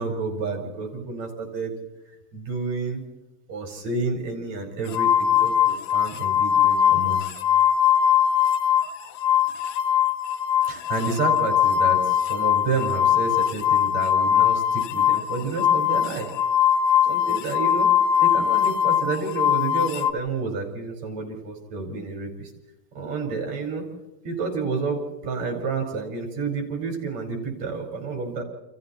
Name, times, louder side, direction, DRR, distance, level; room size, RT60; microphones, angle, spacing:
voice 1, 0.0-1.8 2.3-3.0 3.5-7.2 10.7-16.3 17.0-17.9 18.2-22.5 22.9-23.8 24.2-28.4, right 4 dB, 50° right, 2 dB, 6.1 m, -30 dB
sound 1, 4.9-8.9 9.2-20.1, left 9 dB, 70° left, 1.5 m, -21 dB
29.0 x 27.5 x 4.3 m, 1.0 s
omnidirectional pair, 4.1 m